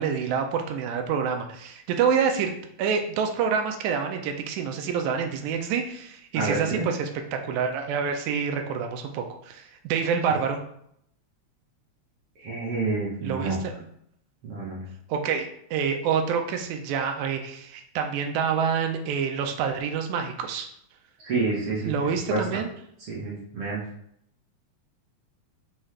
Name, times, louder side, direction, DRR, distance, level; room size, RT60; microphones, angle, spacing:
voice 1, 0.0-2.5 2.8-10.6 13.2-13.6 15.1-20.7 21.9-22.7, right 6 dB, 90° right, 4 dB, 2.0 m, -27 dB
voice 2, 6.3-6.8 12.4-13.6 14.4-14.9 21.2-21.9 22.3-22.4 23.1-23.8, right 3 dB, 60° right, -6 dB, 1.6 m, -28 dB
5.6 x 2.3 x 3.2 m, 0.70 s
omnidirectional pair, 3.3 m